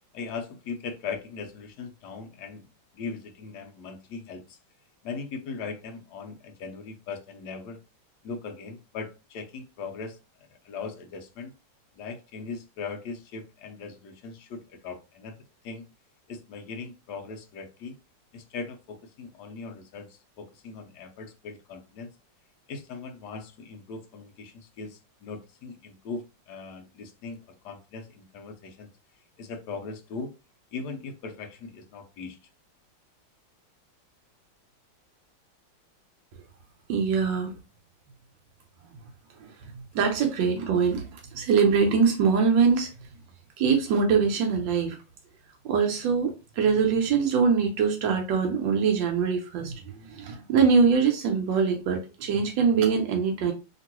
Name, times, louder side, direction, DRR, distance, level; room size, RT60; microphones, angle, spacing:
voice 1, 0.1-2.7 2.9-4.6 5.0-7.8 8.2-10.2 10.6-11.5 12.0-15.3 15.6-15.8 16.3-17.9 18.3-22.1 22.7-27.4 27.6-28.9 29.4-30.3 30.7-32.4, left 4 dB, 70° left, 1.1 m, -39 dB
voice 2, 36.9-37.5 39.4-42.9 43.6-45.0 45.6-53.5, right 5 dB, 85° right, 1.3 m, -23 dB
2.9 x 2.9 x 2.9 m
omnidirectional pair, 2.0 m